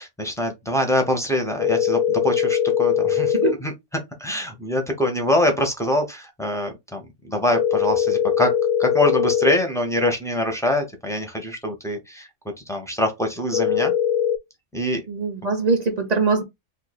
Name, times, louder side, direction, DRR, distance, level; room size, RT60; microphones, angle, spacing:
voice 1, 0.0-3.7 4.2-8.5 8.8-12.3 12.7-13.9 14.7-15.0, left 1 dB, 5° left, 0.4 m, -24 dB
sound 1, 1.6-3.5 7.5-9.5 13.5-14.4, left 9 dB, 90° left, 1.0 m, -21 dB
voice 2, 15.1-16.4, right 4 dB, 40° right, 0.6 m, -22 dB
2.6 x 2.6 x 4.0 m
omnidirectional pair, 1.4 m